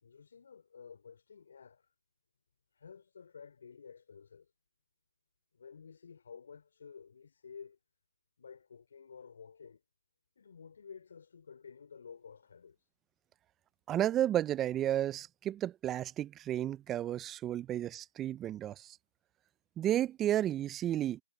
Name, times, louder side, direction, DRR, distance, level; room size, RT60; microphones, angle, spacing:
voice 1, 0.0-1.9 2.7-4.5 5.5-7.8 8.4-9.8 10.4-12.9 17.5-17.6, left 6 dB, 60° left, 3.1 m, -52 dB
voice 2, 13.9-19.0 19.8-21.2, right 12 dB, 15° right, 0.6 m, -32 dB
figure-of-eight pair, 145°, 0 cm